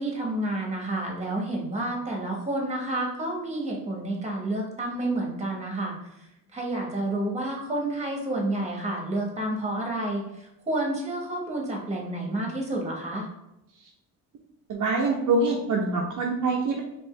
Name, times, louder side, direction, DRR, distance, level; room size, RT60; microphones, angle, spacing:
voice 1, 0.0-5.9 6.5-13.3, right 1 dB, 20° right, 0 dB, 1.2 m, -30 dB
voice 2, 14.7-16.8, right 3 dB, 60° right, -1 dB, 0.7 m, -25 dB
4.3 x 3.0 x 3.2 m, 0.86 s
cardioid pair, 100°, 34 cm